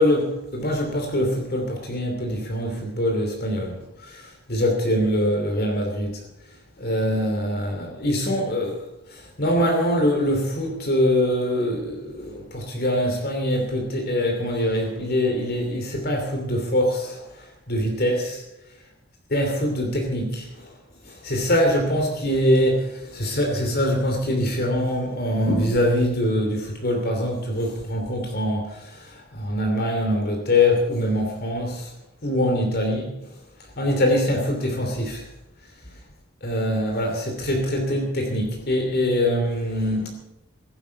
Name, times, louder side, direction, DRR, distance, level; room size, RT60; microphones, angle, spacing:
voice 1, 0.0-6.2 6.8-18.3 19.3-20.7 21.0-31.9 32.2-33.3 33.8-35.3 36.4-40.1, left 1 dB, 45° left, 2 dB, 2.8 m, -24 dB
16.0 x 11.5 x 6.9 m, 0.91 s
head